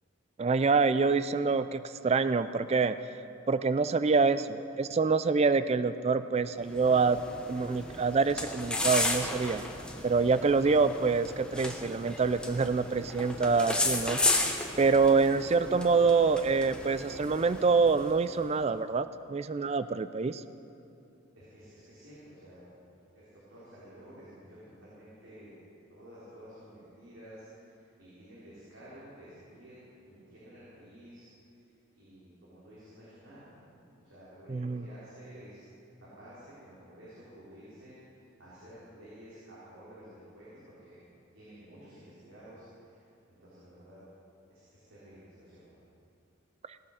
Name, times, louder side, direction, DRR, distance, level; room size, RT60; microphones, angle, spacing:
voice 1, 0.4-3.0 3.5-7.2 7.5-9.6 10.0-20.4 34.5-34.8, right 4 dB, 30° right, 13 dB, 0.4 m, -26 dB
sound 1, 6.6-18.4, left 2 dB, 5° left, 1.0 m, -34 dB
voice 2, 21.3-22.7 23.1-25.6 25.9-29.8 30.0-31.3 31.9-41.0 41.3-43.0 43.3-44.0 44.5-45.8, equal, 80° right, -10 dB, 3.9 m, -52 dB
17.5 x 8.9 x 6.5 m, 2.7 s
head